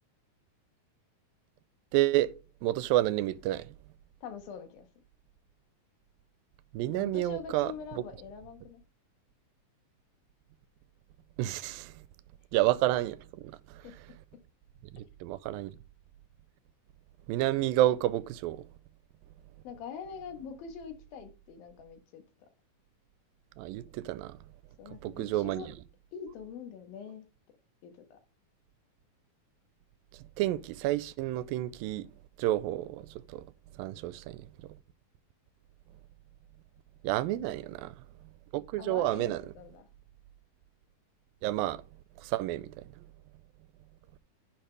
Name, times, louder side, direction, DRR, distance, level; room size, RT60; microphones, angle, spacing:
voice 1, 1.9-2.3 2.6-3.7 6.7-7.7 11.4-11.9 12.5-13.9 14.9-15.7 17.3-18.6 23.6-24.4 25.0-25.7 30.4-32.1 32.4-33.5 33.8-34.5 37.0-38.0 38.5-39.4 41.4-41.8 42.2-43.0, right 15 dB, 90° right, 2.4 m, -30 dB
voice 2, 4.2-4.9 6.9-8.8 13.8-13.9 19.6-22.5 24.8-25.7 26.1-27.3 27.8-28.2 37.3-37.9 38.8-39.9, left 7 dB, 85° left, 3.2 m, -44 dB
10.0 x 6.5 x 3.3 m
omnidirectional pair, 4.1 m